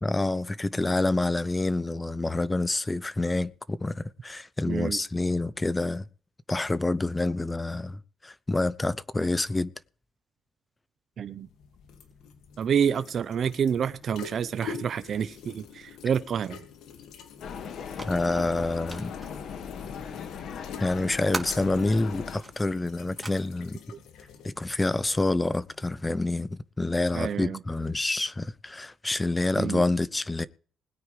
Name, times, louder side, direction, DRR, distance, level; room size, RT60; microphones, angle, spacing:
voice 1, 0.0-6.1 6.5-9.7 18.0-19.1 20.8-23.8 24.4-30.5, left 2 dB, 15° left, 0.7 m, -27 dB
voice 2, 4.7-5.0 11.2-11.5 12.6-16.6 27.1-27.6 29.6-29.8, right 7 dB, 55° right, 0.9 m, -28 dB
sound 1, 11.3-26.3, left 7 dB, 85° left, 2.3 m, -47 dB
sound 2, 17.4-22.4, left 7 dB, 70° left, 2.0 m, -38 dB
sound 3, 17.9-23.3, right 2 dB, 10° right, 3.1 m, -42 dB
20.5 x 9.3 x 3.4 m
cardioid pair, 90°, 0 cm